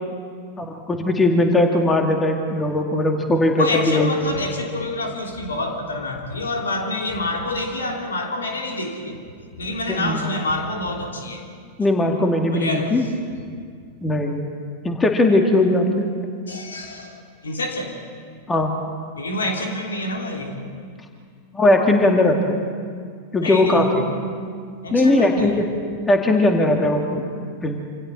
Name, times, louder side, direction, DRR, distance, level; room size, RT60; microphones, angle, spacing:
voice 1, 0.6-4.4 9.9-10.2 11.8-13.0 14.0-14.4 14.8-16.1 18.5-18.7 21.5-22.6 23.3-24.1 24.9-25.6 26.1-27.2 27.6-27.8, left 1 dB, 15° left, 3 dB, 2.3 m, -19 dB
voice 2, 3.6-9.2 9.6-11.4 12.5-12.9 16.5-17.9 19.2-20.6 23.4-24.3 24.8-25.5, left 2 dB, 70° left, 2 dB, 2.9 m, -27 dB
27.0 x 27.0 x 4.5 m, 2.1 s
figure-of-eight pair, 90°, 0 cm